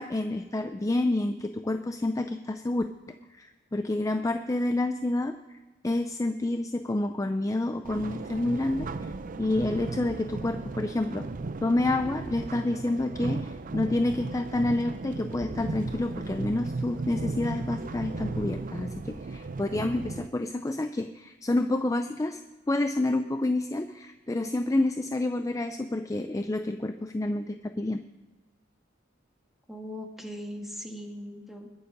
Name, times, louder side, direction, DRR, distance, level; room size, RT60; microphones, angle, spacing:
voice 1, 0.0-5.4 5.8-9.1 9.4-11.3 11.6-22.4 22.7-28.0, left 2 dB, 15° left, 8 dB, 0.4 m, -29 dB
sound 1, 7.8-20.3, right 3 dB, 45° right, 0.5 m, -36 dB
voice 2, 29.7-31.7, equal, ahead, 2 dB, 1.7 m, -39 dB
21.5 x 7.1 x 5.2 m, 1.2 s
head